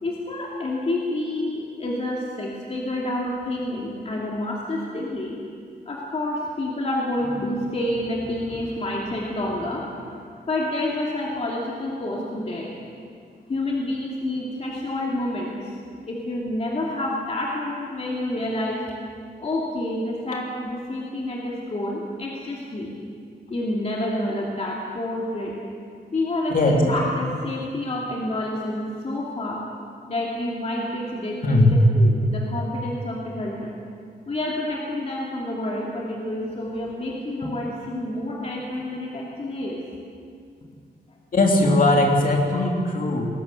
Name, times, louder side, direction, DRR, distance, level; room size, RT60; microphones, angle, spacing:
voice 1, 0.0-5.4 5.9-12.7 13.5-15.7 16.1-19.0 19.4-22.9 23.5-25.5 26.1-29.6 30.1-33.7 34.3-39.8, left 1 dB, 35° left, -3 dB, 2.6 m, -28 dB
voice 2, 26.5-26.8 31.4-31.7 41.3-43.3, left 2 dB, 50° left, 0 dB, 3.2 m, -19 dB
21.0 x 18.0 x 8.2 m, 2.2 s
wide cardioid pair, 170°, 18 cm